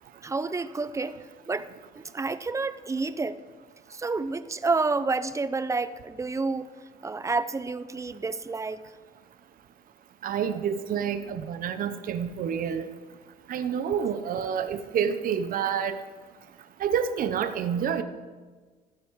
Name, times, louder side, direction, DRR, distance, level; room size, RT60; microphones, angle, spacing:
voice 1, 0.2-3.4 3.9-6.7 7.0-8.9, right 3 dB, 20° right, 0.6 m, -29 dB
voice 2, 10.2-12.9 13.5-16.0 16.8-18.0, right 8 dB, 55° right, 0.9 m, -28 dB
14.5 x 13.0 x 4.8 m
cardioid pair, 110°, 17 cm